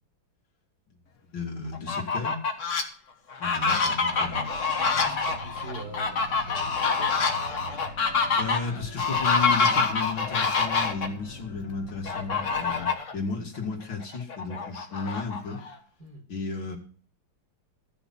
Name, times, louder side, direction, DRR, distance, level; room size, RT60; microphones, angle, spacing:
voice 1, 1.3-2.4 3.4-4.6 8.4-15.6 16.3-16.8, left 4 dB, 65° left, 0 dB, 3.3 m, -34 dB
Fowl, 1.7-2.8 3.3-11.1 12.1-13.1 13.6-13.7 14.0-15.8, left 4 dB, 40° left, 1.5 m, -26 dB
sound 1, 4.1-12.9, left 1 dB, 80° left, 2.5 m, -44 dB
voice 2, 5.0-7.1 16.0-16.2, right 2 dB, 50° right, 0 dB, 4.8 m, -42 dB
15.0 x 6.9 x 5.8 m, 0.43 s
omnidirectional pair, 2.2 m